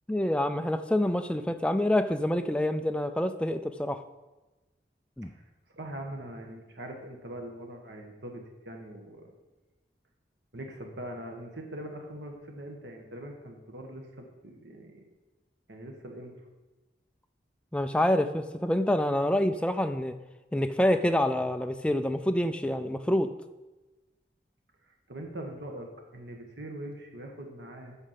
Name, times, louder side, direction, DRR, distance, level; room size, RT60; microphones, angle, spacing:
voice 1, 0.1-4.0 5.2-5.3 17.7-20.1 20.5-23.3, left 1 dB, 5° left, 8 dB, 0.4 m, -27 dB
voice 2, 5.4-9.3 10.5-15.0 15.7-16.3 25.1-28.0, right 1 dB, 80° right, 2 dB, 1.4 m, -42 dB
8.1 x 6.6 x 5.8 m, 1.1 s
head